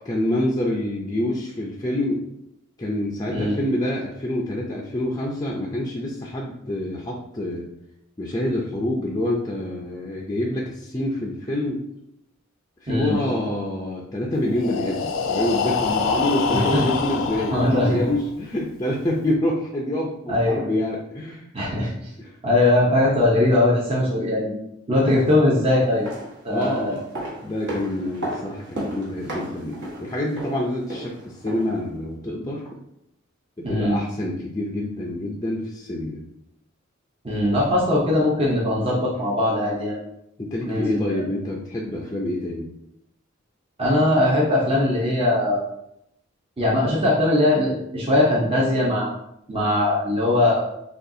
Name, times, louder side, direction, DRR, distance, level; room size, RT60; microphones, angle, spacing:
voice 1, 0.0-2.3 2.8-7.7 8.2-11.8 12.8-21.5 22.2-22.3 26.5-27.0 27.4-32.8 33.6-36.2 40.4-42.7, left 1 dB, 20° left, -2 dB, 0.5 m, -27 dB
voice 2, 12.9-13.2 16.5-16.8 17.5-18.0 20.3-20.6 21.5-21.9 22.4-24.5 24.9-26.1 26.4-27.0 33.6-34.0 37.2-40.0 40.7-41.2 43.8-45.6 46.6-49.1 49.5-50.6, left 1 dB, 30° right, -5 dB, 0.8 m, -20 dB
Breathing, 14.5-18.4, left 5 dB, 85° left, 0.4 m, -26 dB
sound 1, 25.8-31.8 32.1-32.2, right 1 dB, 60° right, 1.5 m, -35 dB
6.4 x 2.4 x 2.7 m, 0.79 s
head